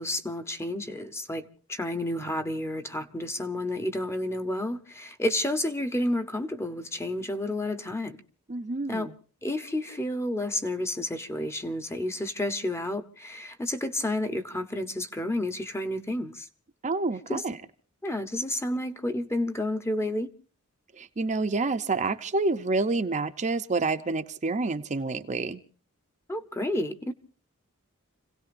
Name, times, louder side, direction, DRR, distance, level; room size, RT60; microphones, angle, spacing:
voice 1, 0.0-8.2 8.9-9.1 9.4-16.5 17.3-17.4 18.0-20.3 26.3-27.1, left 1 dB, 10° left, 0.9 m, -30 dB
voice 2, 8.5-9.1 16.8-17.6 21.0-25.6, right 3 dB, 35° right, 0.7 m, -28 dB
29.5 x 17.0 x 2.6 m
head